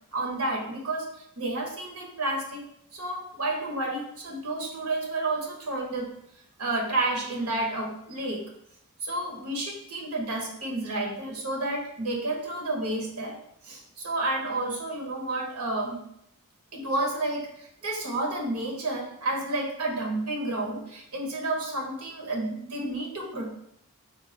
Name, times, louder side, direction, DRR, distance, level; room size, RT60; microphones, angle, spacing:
voice 1, 0.1-1.0 1.4-2.6 2.9-6.1 6.6-8.4 9.0-13.3 13.6-16.0 16.7-23.5, right 2 dB, 85° right, 0 dB, 1.1 m, -30 dB
4.5 x 2.4 x 4.1 m, 0.76 s
head